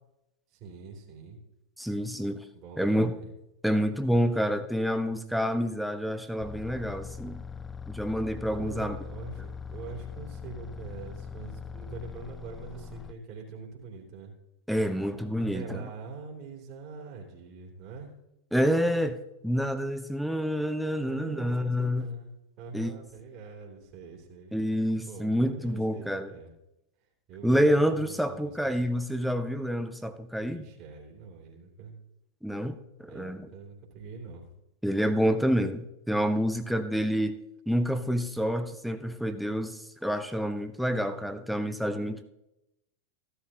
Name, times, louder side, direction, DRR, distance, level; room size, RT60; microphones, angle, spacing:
voice 1, 0.6-1.4 2.5-3.3 8.5-14.3 15.4-18.1 21.0-22.3 22.6-24.5 25.1-26.5 27.3-28.6 28.8-28.9 30.3-32.0 33.1-34.5, right 4 dB, 40° right, -1 dB, 2.9 m, -44 dB
voice 2, 1.8-2.4 2.8-3.2 3.6-7.4 7.9-9.0 14.7-15.9 18.5-22.1 22.7-22.9 24.5-26.3 27.4-30.7 32.4-33.5 34.8-37.4 37.7-42.3, equal, ahead, 8 dB, 0.7 m, -28 dB
sound 1, 6.4-13.1, left 6 dB, 15° left, 0.3 m, -41 dB
15.5 x 11.5 x 2.9 m, 0.88 s
figure-of-eight pair, 90°, 0 cm